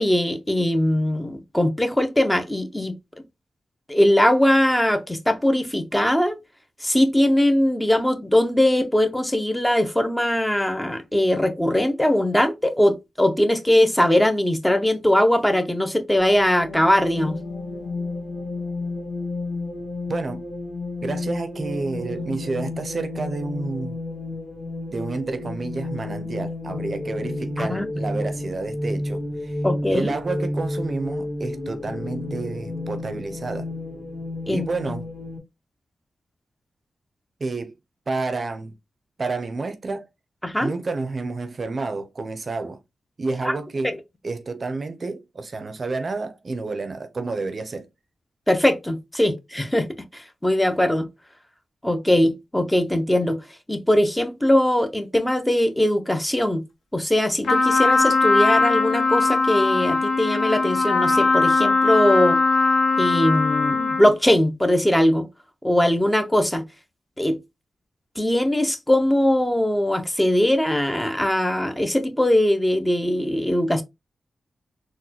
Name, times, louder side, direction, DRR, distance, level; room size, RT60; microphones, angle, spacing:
voice 1, 0.0-2.9 3.9-6.4 6.8-17.4 27.6-27.9 29.6-30.1 34.5-34.7 40.4-40.7 43.4-43.6 43.8-44.0 48.5-49.9 50.1-51.1 51.8-53.4 53.7-56.6 56.9-62.4 63.0-65.3 65.6-66.6 67.2-67.4 68.2-73.8, left 1 dB, 10° left, 0.6 m, -20 dB
sound 1, 16.2-35.4, left 2 dB, 35° left, 1.5 m, -31 dB
voice 2, 20.1-20.4 21.0-24.0 24.9-29.6 29.9-33.7 34.5-35.1 37.4-37.7 38.1-38.7 39.2-40.1 40.6-42.8 43.2-44.0 44.2-47.9, right 3 dB, 50° right, 0.5 m, -29 dB
Trumpet, 57.4-64.1, left 3 dB, 90° left, 0.7 m, -20 dB
3.8 x 2.1 x 2.8 m
cardioid pair, 70°, 0 cm